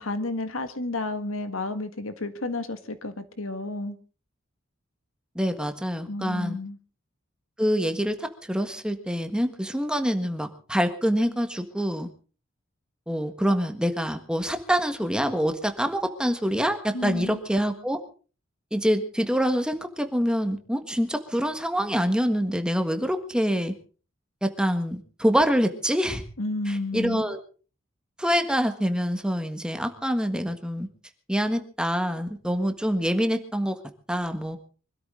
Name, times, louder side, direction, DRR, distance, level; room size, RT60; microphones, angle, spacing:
voice 1, 0.0-4.0 6.1-6.8 16.9-17.4 26.4-27.2, left 2 dB, 85° left, 9 dB, 1.7 m, -31 dB
voice 2, 5.3-6.6 7.6-12.1 13.1-18.0 18.7-23.7 24.4-26.2 26.7-27.4 28.2-30.9 31.3-33.8 34.1-34.6, equal, 5° right, 7 dB, 1.5 m, -25 dB
25.0 x 13.0 x 3.8 m, 0.38 s
head